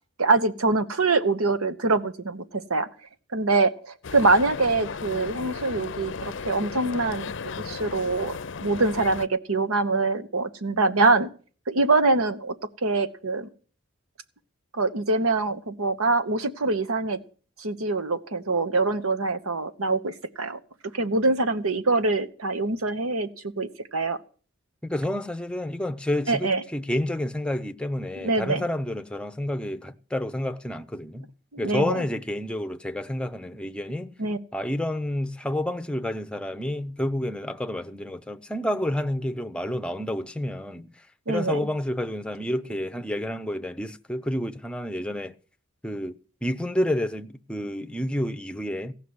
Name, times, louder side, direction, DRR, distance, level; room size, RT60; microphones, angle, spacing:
voice 1, 0.2-2.9 3.3-7.3 7.6-11.3 11.7-12.5 12.8-13.5 14.7-17.2 17.6-20.6 20.9-23.3 23.6-24.2 26.3-26.6 28.2-28.6 31.5-32.0 34.2-34.4 41.3-41.6, right 3 dB, 90° right, 1.2 m, -24 dB
sound 1, 4.0-9.3, left 5 dB, 60° left, 0.5 m, -35 dB
voice 2, 24.8-31.3 31.6-34.1 34.5-40.9 41.3-45.3 45.8-46.1 46.4-48.9, left 1 dB, 5° left, 0.6 m, -29 dB
16.5 x 5.9 x 9.6 m
head